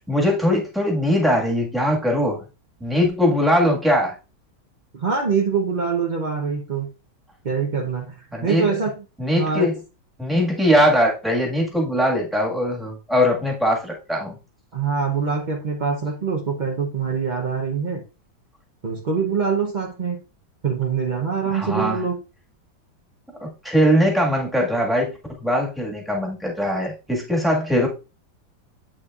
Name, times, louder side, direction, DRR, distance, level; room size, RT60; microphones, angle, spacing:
voice 1, 0.1-2.4 2.8-4.1 8.3-8.7 9.2-9.7 10.2-14.4 21.5-22.0 23.6-25.1 25.4-27.9, equal, ahead, -2 dB, 1.4 m, -21 dB
voice 2, 4.9-6.9 7.4-8.9 9.3-9.7 14.7-18.0 18.8-20.2 20.6-22.2, right 5 dB, 60° right, 0 dB, 0.4 m, -24 dB
8.0 x 6.3 x 2.4 m, 0.30 s
omnidirectional pair, 2.1 m